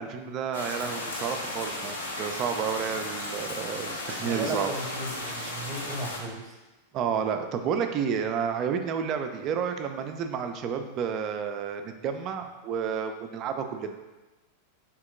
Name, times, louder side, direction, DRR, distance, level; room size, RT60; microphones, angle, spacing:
voice 1, 0.0-4.7 5.2-5.7 6.9-14.0, right 7 dB, 35° right, 6 dB, 0.4 m, -31 dB
sound 1, 0.5-6.2, left 2 dB, 65° left, 0.6 m, -35 dB
voice 2, 4.1-6.5, right 1 dB, 20° right, -2 dB, 0.9 m, -36 dB
3.5 x 3.0 x 3.7 m, 1.1 s
figure-of-eight pair, 90°, 0 cm